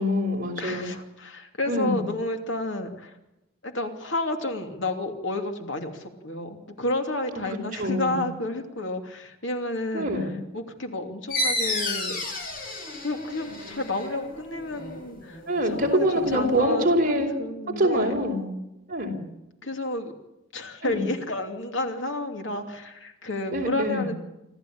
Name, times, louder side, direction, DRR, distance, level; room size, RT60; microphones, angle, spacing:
voice 1, 0.0-0.9 1.7-2.1 7.8-8.3 9.9-10.4 15.5-17.3 17.7-18.5 18.9-19.2 20.8-21.0 23.5-24.1, equal, 45° right, 2 dB, 4.5 m, -25 dB
voice 2, 0.6-3.2 3.6-10.1 10.5-12.2 13.0-18.2 19.6-20.1 20.5-24.2, left 2 dB, 65° left, 5 dB, 2.8 m, -31 dB
sound 1, 11.3-16.6, left 2 dB, 45° left, 6.2 m, -32 dB
26.0 x 15.0 x 8.8 m, 0.91 s
head